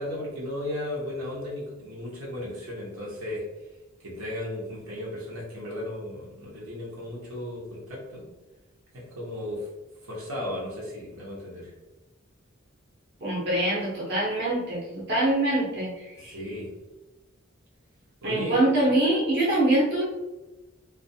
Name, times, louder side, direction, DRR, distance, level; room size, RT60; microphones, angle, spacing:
voice 1, 0.0-3.4 4.0-8.3 8.9-9.7 10.0-11.7 16.1-16.7 18.2-18.6, left 1 dB, 90° right, -5 dB, 1.0 m, -35 dB
voice 2, 13.2-16.4 18.2-20.0, right 1 dB, 55° right, -5 dB, 0.8 m, -24 dB
2.4 x 2.3 x 2.7 m, 1.1 s
head